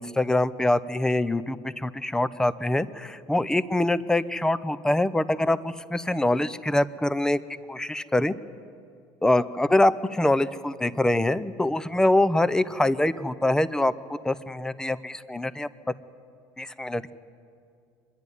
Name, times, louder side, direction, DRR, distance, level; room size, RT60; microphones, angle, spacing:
voice 1, 0.0-7.4 7.7-8.3 9.2-13.9 14.2-15.7 16.6-17.1, left 1 dB, 5° left, 15 dB, 0.7 m, -24 dB
24.5 x 11.0 x 9.9 m, 2.4 s
supercardioid pair, 105°, 9 cm